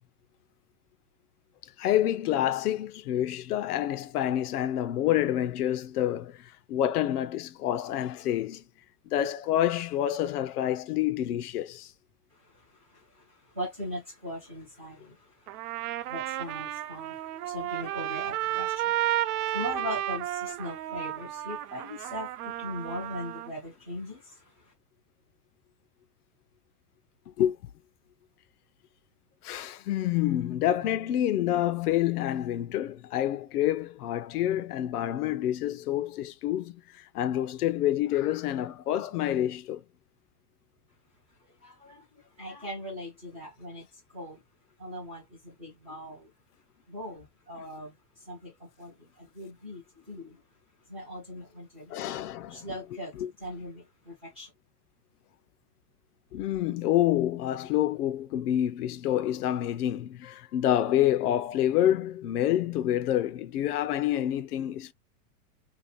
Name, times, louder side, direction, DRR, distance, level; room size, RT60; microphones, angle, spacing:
voice 1, 1.8-8.6 9.1-11.9 27.4-27.6 29.4-39.8 51.9-52.8 53.2-53.3 56.3-64.9, left 12 dB, 75° left, 0.7 m, -28 dB
voice 2, 12.3-24.7 41.6-44.4 44.8-46.3 46.9-50.4 50.9-52.2 52.5-54.5, left 1 dB, 10° right, 0.3 m, -40 dB
Trumpet, 15.5-23.5, right 13 dB, 75° right, 0.6 m, -32 dB
3.0 x 2.9 x 3.1 m
supercardioid pair, 165°, 46 cm